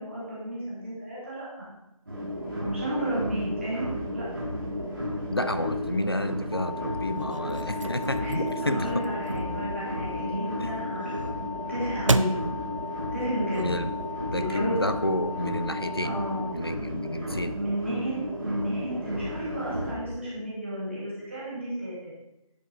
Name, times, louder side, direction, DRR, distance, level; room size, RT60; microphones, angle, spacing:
voice 1, 0.0-1.7 2.6-4.3 7.7-7.9 8.2-11.3 11.7-12.3 13.1-13.7 14.3-14.8 16.0-16.5 17.1-17.2 17.5-21.9, right 1 dB, 20° right, -9 dB, 2.2 m, -32 dB
sound 1, 2.1-19.9, equal, 35° right, 2.1 m, -33 dB
voice 2, 5.3-8.9 10.6-10.7 13.6-13.9 14.3-16.2 16.5-17.6, left 1 dB, 40° left, 11 dB, 0.4 m, -30 dB
sound 2, 6.5-16.5, left 6 dB, 90° right, 2.9 m, -38 dB
sound 3, 7.0-14.1, right 3 dB, 60° right, 0.4 m, -35 dB
9.8 x 5.1 x 3.2 m, 0.90 s
figure-of-eight pair, 180°, 19 cm